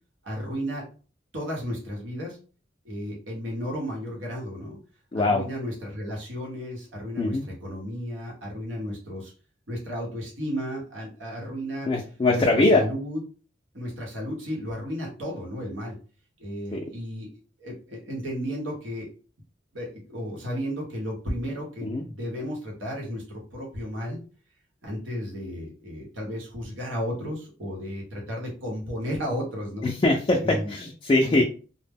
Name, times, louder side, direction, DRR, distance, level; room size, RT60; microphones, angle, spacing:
voice 1, 0.2-0.8 1.3-2.4 2.8-4.8 5.1-9.3 9.7-11.9 12.3-13.2 13.7-16.0 16.4-17.3 17.6-19.1 19.7-24.2 24.8-29.9 30.4-30.7 31.2-31.4, equal, 80° right, -2 dB, 0.9 m, -33 dB
voice 2, 5.1-5.4 7.2-7.4 11.9-12.8 16.7-16.8 21.8-22.0 29.8-30.4 30.7-31.4, left 2 dB, 25° left, -1 dB, 0.3 m, -22 dB
2.1 x 2.0 x 3.4 m, 0.37 s
head